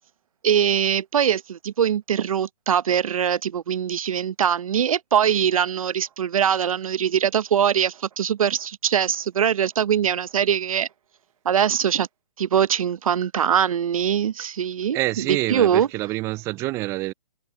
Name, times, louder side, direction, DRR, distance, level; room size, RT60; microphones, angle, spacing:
voice 1, 0.4-10.9 11.4-12.1 12.4-15.9, right 8 dB, 60° right, 0.9 m, -22 dB
voice 2, 14.9-17.1, right 19 dB, 15° right, 0.5 m, -27 dB
hypercardioid pair, 145°, 20 cm